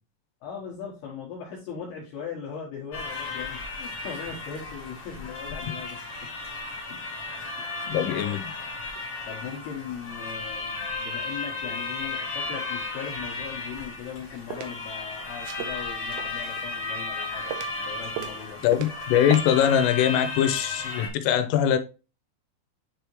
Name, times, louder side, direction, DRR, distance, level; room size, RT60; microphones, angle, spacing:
voice 1, 0.4-6.0 6.9-7.2 8.0-8.3 9.3-18.6, left 7 dB, 70° left, 2.5 m, -39 dB
sound 1, 2.9-21.1, left 3 dB, 40° left, 1.5 m, -34 dB
voice 2, 7.9-8.4 18.6-21.8, left 10 dB, 90° left, 3.2 m, -22 dB
sound 2, 14.0-14.7 15.4-16.7 17.0-17.9 18.1-19.1 19.3-19.4, right 12 dB, 85° right, 2.4 m, -36 dB
9.8 x 3.4 x 3.0 m
omnidirectional pair, 5.7 m